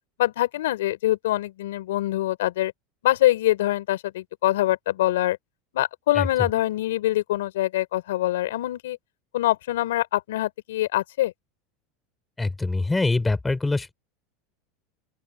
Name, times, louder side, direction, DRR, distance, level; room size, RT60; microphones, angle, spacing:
voice 1, 0.2-2.7 3.0-5.4 5.7-9.0 9.3-11.3, left 15 dB, 85° left, 4.9 m, -24 dB
voice 2, 12.4-13.9, left 3 dB, 10° left, 7.2 m, -24 dB
open air
supercardioid pair, 105°, 0 cm